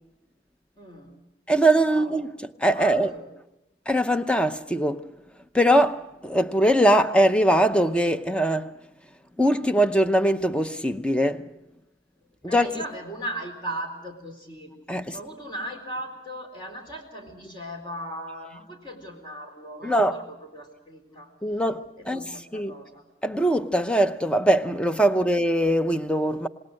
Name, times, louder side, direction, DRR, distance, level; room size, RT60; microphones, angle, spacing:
voice 1, 0.8-1.2 1.8-2.2 2.7-3.3 12.4-14.7 15.1-21.3 22.0-23.0, right 1 dB, 30° left, 4.0 m, -38 dB
voice 2, 1.5-2.3 2.6-3.1 3.9-5.0 5.5-8.7 9.4-11.5 12.4-12.7 14.9-15.2 19.8-20.2 21.4-22.2 22.5-22.8 23.2-26.5, right 1 dB, 5° left, 0.7 m, -22 dB
27.0 x 20.0 x 6.5 m
head